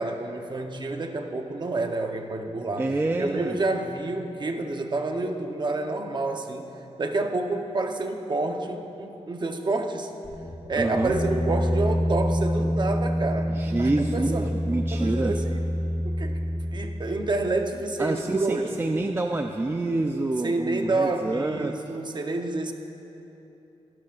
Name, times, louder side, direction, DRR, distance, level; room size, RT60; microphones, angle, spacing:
voice 1, 0.0-2.8 3.2-6.7 7.0-10.1 10.7-14.5 14.9-15.6 16.0-18.7 20.4-22.7, right 2 dB, 40° right, 4 dB, 0.9 m, -29 dB
voice 2, 2.8-3.7 10.8-11.1 13.5-15.4 18.0-21.7, right 2 dB, 20° right, 4 dB, 0.4 m, -27 dB
sound 1, 10.2-17.7, equal, 40° left, 1.9 m, -27 dB
23.5 x 12.0 x 2.5 m, 3.0 s
wide cardioid pair, 125°, 12 cm